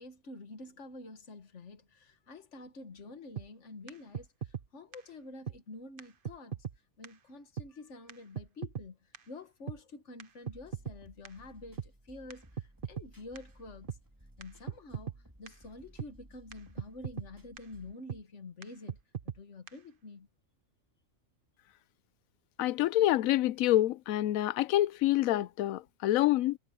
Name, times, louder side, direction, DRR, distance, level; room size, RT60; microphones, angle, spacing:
voice 1, 0.0-6.6 7.0-14.0 14.4-15.1 15.4-19.0 19.3-20.3, left 2 dB, 60° left, 2.0 m, -48 dB
sound 1, 3.4-3.5 3.9-4.0 4.1-4.7 4.9-5.0 5.5-5.6 6.0-6.1 6.2-6.8 7.0-7.1 7.6-7.7 8.1-8.2 8.4-8.9 9.1-9.2 9.7-9.8 10.2-11.0 11.2-11.3 11.8-11.9 12.3-12.4 12.6-13.1 13.4-13.5 13.9-14.0 14.4-14.5 14.7-15.2 15.5-15.6 16.0-16.1 16.5-16.6 16.8-17.3 17.6-17.7 18.1-18.2 18.6-18.7 18.9-19.4 19.7-19.8, right 8 dB, 45° right, 1.1 m, -38 dB
sound 2, 10.5-17.9, right 1 dB, 15° right, 2.4 m, -58 dB
voice 2, 22.6-26.6, left 14 dB, 85° left, 1.0 m, -27 dB
omnidirectional pair, 1.4 m